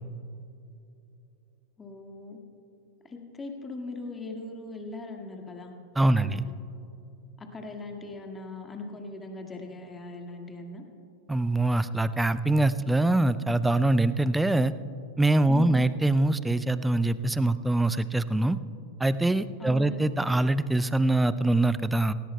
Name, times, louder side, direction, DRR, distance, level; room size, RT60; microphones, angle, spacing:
voice 1, 1.8-2.4 3.0-5.8 6.2-6.5 7.4-10.8 15.5-15.9 19.6-20.0, left 3 dB, 15° left, 3 dB, 1.8 m, -39 dB
voice 2, 6.0-6.4 11.3-14.7 15.2-18.6 19.0-22.1, right 2 dB, 5° right, 15 dB, 0.4 m, -24 dB
18.5 x 18.5 x 2.2 m, 2.8 s
figure-of-eight pair, 90°, 0 cm